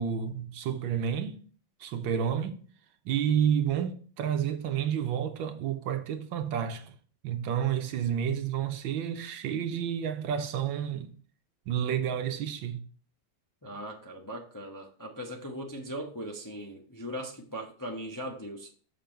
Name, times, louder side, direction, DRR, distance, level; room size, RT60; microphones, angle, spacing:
voice 1, 0.0-1.4 1.8-2.6 3.0-6.9 7.2-11.1 11.7-12.8, right 8 dB, 75° right, 1.5 m, -30 dB
voice 2, 13.6-18.7, equal, 15° left, 0.6 m, -39 dB
6.8 x 5.3 x 4.4 m
omnidirectional pair, 2.2 m